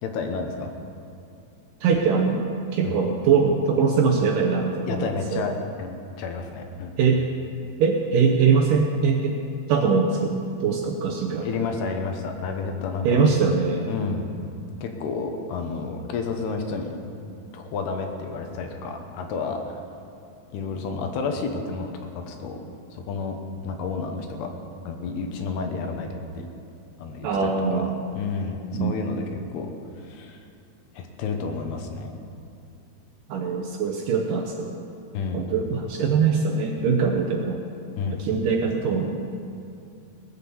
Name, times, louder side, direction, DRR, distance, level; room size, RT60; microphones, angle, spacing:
voice 1, 0.0-0.7 2.8-3.0 4.9-5.5 5.8-5.9 6.2-6.9 11.4-13.2 13.9-14.3 14.8-17.0 17.5-19.8 20.5-22.6 22.9-23.4 23.6-24.5 24.8-26.5 27.0-29.7 30.0-30.4 30.9-32.2 35.1-35.5 38.0-38.3, left 4 dB, 80° left, 4 dB, 3.2 m, -30 dB
voice 2, 1.8-2.5 2.7-5.4 7.0-7.2 7.8-9.4 9.7-11.7 13.0-13.9 27.2-28.0 28.7-29.0 33.3-34.8 35.3-37.6 38.1-39.2, right 5 dB, 75° right, 1 dB, 2.1 m, -22 dB
19.0 x 8.3 x 7.0 m, 2.6 s
omnidirectional pair, 4.7 m